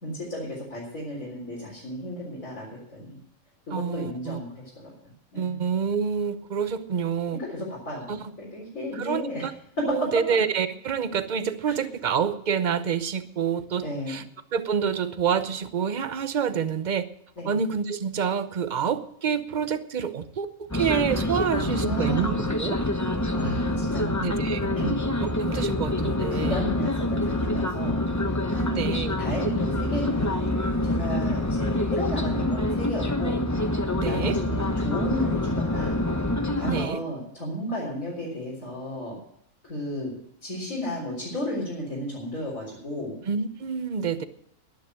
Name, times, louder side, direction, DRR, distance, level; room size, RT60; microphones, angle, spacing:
voice 1, 0.0-3.2 3.7-4.8 5.3-5.6 7.3-9.4 9.8-9.9 11.7-11.8 13.8-14.2 17.4-17.5 21.5-22.3 23.4-24.2 24.8-24.9 26.3-28.9 29.2-36.0 36.6-39.2 39.6-40.1 40.4-43.2, left 1 dB, 70° left, -6 dB, 4.4 m, -33 dB
voice 2, 3.7-4.4 5.3-7.4 8.1-8.2 8.9-9.5 9.9-14.2 14.5-17.1 17.5-22.8 24.2-24.7 25.4-26.6 28.8-29.1 34.0-34.4 36.6-37.0 43.3-44.2, right 7 dB, 40° right, 12 dB, 0.8 m, -27 dB
sound 1, 20.7-36.9, left 1 dB, 15° left, 0.9 m, -26 dB
11.0 x 10.0 x 7.8 m, 0.71 s
omnidirectional pair, 1.5 m